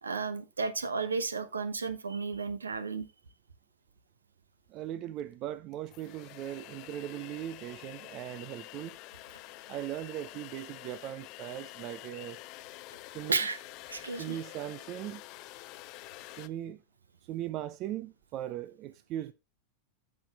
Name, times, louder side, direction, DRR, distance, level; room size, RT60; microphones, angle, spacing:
voice 1, 0.0-3.0 13.3-13.6 13.9-14.4, right 4 dB, 75° right, 0.9 m, -33 dB
voice 2, 4.7-8.9 9.7-12.4 13.1-13.3 14.2-15.2 16.4-16.8 17.3-19.3, right 12 dB, 40° right, 0.5 m, -39 dB
sound 1, 5.2-5.3 5.7-16.5, left 18 dB, 40° left, 0.6 m, -48 dB
16.0 x 5.9 x 2.4 m
figure-of-eight pair, 90°, 0 cm